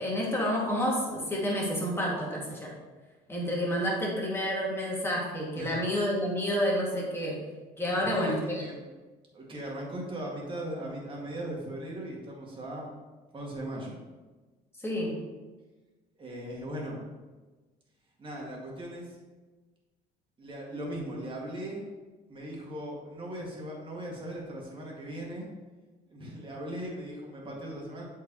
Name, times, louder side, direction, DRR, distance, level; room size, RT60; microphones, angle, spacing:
voice 1, 0.0-2.7 3.3-7.4 7.8-8.6 14.8-15.2, equal, 15° left, -3 dB, 2.0 m, -29 dB
voice 2, 7.9-8.8 9.3-13.0 13.3-14.0 16.2-17.0 18.2-19.2 20.4-21.9 22.3-25.5 26.1-28.0, right 1 dB, 30° right, -2 dB, 2.0 m, -38 dB
8.0 x 5.0 x 3.0 m, 1.3 s
cardioid pair, 110°, 17 cm